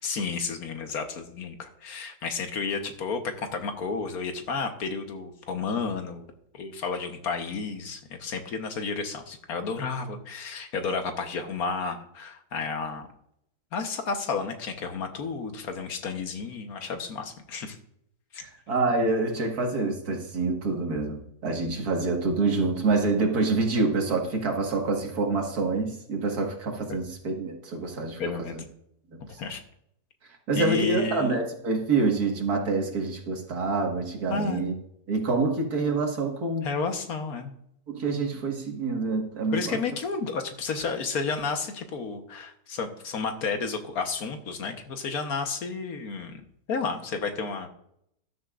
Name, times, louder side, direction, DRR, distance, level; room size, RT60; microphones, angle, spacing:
voice 1, 0.0-13.1 13.7-17.8 18.3-18.4 28.2-28.5 29.4-29.6 30.5-31.4 34.3-34.6 36.6-37.5 39.5-47.7, left 4 dB, 75° left, 6 dB, 1.6 m, -31 dB
voice 2, 18.4-28.6 29.1-29.2 30.5-34.7 35.1-36.7 37.9-39.8, right 3 dB, 85° right, 1 dB, 2.2 m, -27 dB
13.0 x 12.0 x 2.5 m, 0.74 s
omnidirectional pair, 1.6 m